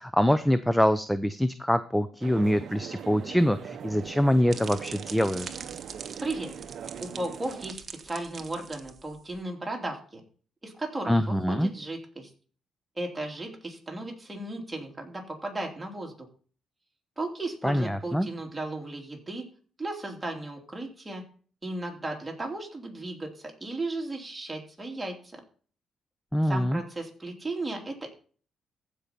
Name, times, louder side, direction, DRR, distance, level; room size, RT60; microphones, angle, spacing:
voice 1, 0.0-5.5 11.1-11.7 17.6-18.3 26.3-26.8, equal, 5° left, 12 dB, 0.6 m, -24 dB
Fashionweek Messe Convention Atmo, 2.2-7.7, right 8 dB, 65° right, 0.7 m, -41 dB
sound 1, 4.0-9.4, right 6 dB, 45° right, 1.1 m, -44 dB
voice 2, 6.2-6.5 7.0-10.2 10.6-12.3 13.0-16.1 17.2-19.4 19.8-21.2 21.6-25.4 26.4-28.1, right 2 dB, 15° right, 0 dB, 3.1 m, -35 dB
15.0 x 5.3 x 4.4 m, 0.42 s
cardioid pair, 90°, 0 cm